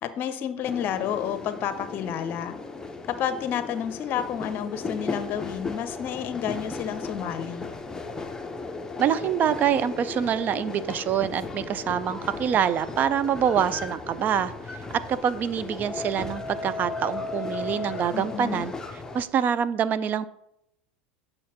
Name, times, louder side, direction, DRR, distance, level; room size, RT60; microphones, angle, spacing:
voice 1, 0.0-2.5 3.1-7.7 18.1-18.7, left 9 dB, 45° left, 11 dB, 0.8 m, -30 dB
sound 1, 0.6-19.2, left 3 dB, 10° left, 0.8 m, -36 dB
voice 2, 9.0-18.7 19.1-20.2, right 8 dB, 35° right, 14 dB, 0.4 m, -25 dB
8.3 x 6.4 x 2.9 m, 0.79 s
hypercardioid pair, 85°, 5 cm